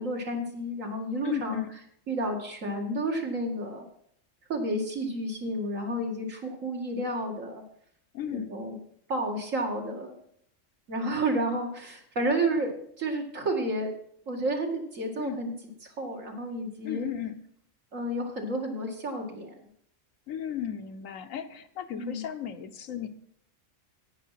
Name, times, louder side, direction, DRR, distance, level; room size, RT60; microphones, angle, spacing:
voice 1, 0.0-1.6 2.1-3.8 4.5-7.6 8.3-8.8 9.1-10.1 10.9-13.9 14.3-15.5 15.8-17.1 17.9-19.5 21.9-22.2, right 1 dB, 80° right, 1 dB, 2.5 m, -31 dB
voice 2, 1.2-1.7 8.1-8.5 15.2-15.4 16.8-17.4 20.3-23.1, left 9 dB, 80° left, 8 dB, 1.3 m, -35 dB
10.5 x 9.2 x 5.8 m, 0.68 s
omnidirectional pair, 1.3 m